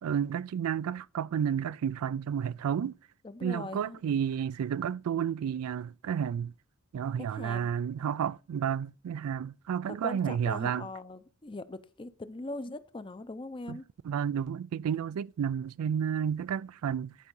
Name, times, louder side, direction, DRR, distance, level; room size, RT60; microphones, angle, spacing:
voice 1, 0.0-2.9 3.4-6.5 6.9-10.9 13.7-13.8 14.0-17.2, right 8 dB, 80° right, 0.3 m, -31 dB
voice 2, 3.2-4.0 7.3-7.7 9.9-13.8, left 2 dB, 25° left, 0.5 m, -41 dB
10.5 x 4.8 x 5.3 m
head